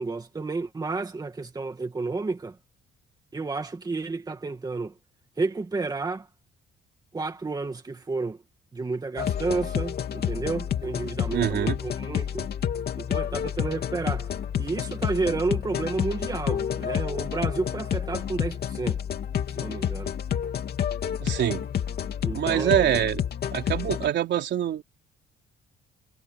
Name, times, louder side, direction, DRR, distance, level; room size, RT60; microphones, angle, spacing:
voice 1, 0.0-2.6 3.3-4.9 5.4-6.3 7.1-8.4 8.7-12.5 13.0-19.0 19.6-20.1 22.2-23.0, right 3 dB, 20° right, 2.1 m, -31 dB
sound 1, 9.2-24.1, left 9 dB, 50° left, 3.0 m, -29 dB
voice 2, 11.3-11.8 21.2-21.6 22.3-23.2 23.5-24.8, right 10 dB, 60° right, 4.2 m, -25 dB
cardioid pair, 145°, 20 cm